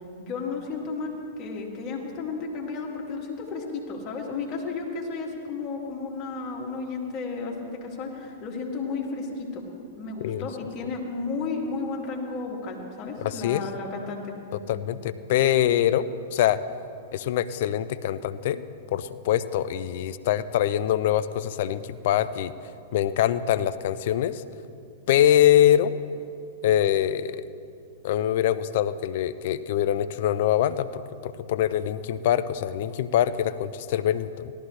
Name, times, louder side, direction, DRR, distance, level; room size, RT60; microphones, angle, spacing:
voice 1, 0.2-9.6 10.0-14.3, left 4 dB, 40° left, -1 dB, 2.6 m, -33 dB
voice 2, 13.2-13.6 14.7-16.1 16.3-16.6 17.1-18.6 18.9-22.5 22.9-24.4 25.1-25.9 26.6-27.4 28.0-34.5, left 11 dB, 60° left, 14 dB, 0.5 m, -24 dB
18.0 x 13.0 x 3.3 m, 2.6 s
hypercardioid pair, 110°, 0 cm